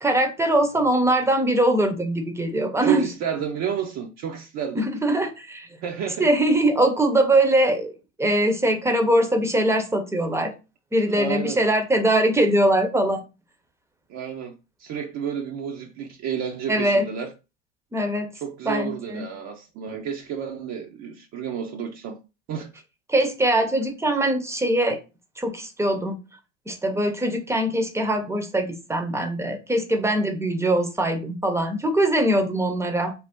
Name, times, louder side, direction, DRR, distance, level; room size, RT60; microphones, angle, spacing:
voice 1, 0.0-3.1 4.7-5.7 6.2-7.9 8.2-10.5 10.9-13.2 16.7-17.0 17.9-18.3 18.6-19.3 23.1-25.0 25.4-26.2 26.7-33.1, right 1 dB, 10° right, 0.7 m, -22 dB
voice 2, 2.8-4.9 5.8-6.3 11.1-11.6 14.1-14.5 14.8-17.3 18.4-22.2 22.5-22.7, right 7 dB, 50° right, 0.6 m, -31 dB
2.7 x 2.0 x 3.5 m
hypercardioid pair, 75°, 35 cm